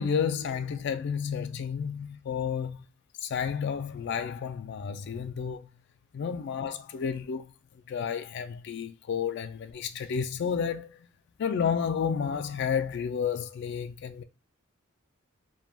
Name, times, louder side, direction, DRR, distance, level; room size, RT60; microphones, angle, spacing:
voice 1, 0.0-2.9 3.2-5.7 6.1-7.5 7.9-11.1 11.4-14.2, left 7 dB, 55° left, 0.3 m, -31 dB
3.2 x 2.2 x 2.3 m
head